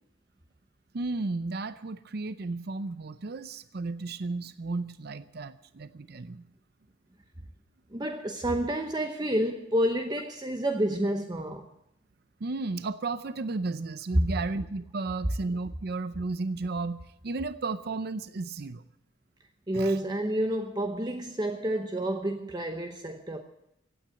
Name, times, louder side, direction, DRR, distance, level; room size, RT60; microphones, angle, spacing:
voice 1, 0.9-6.4 12.4-18.8 19.7-19.9, right 3 dB, 55° right, 0.6 m, -34 dB
voice 2, 7.9-11.7 19.7-23.4, right 1 dB, 20° right, 0.9 m, -29 dB
16.0 x 9.3 x 8.7 m
head